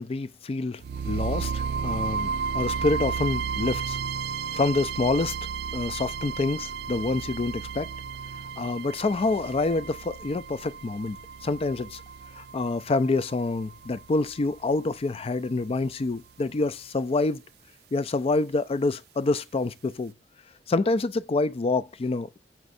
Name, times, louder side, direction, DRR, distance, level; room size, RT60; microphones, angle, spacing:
voice 1, 0.0-4.0 4.5-5.4 5.7-7.9 8.6-12.0 12.4-17.4 17.9-20.1 20.7-22.4, left 3 dB, 35° left, 0.4 m, -27 dB
sound 1, 0.8-14.8, right 6 dB, 60° right, 0.3 m, -33 dB
7.1 x 5.3 x 2.6 m
head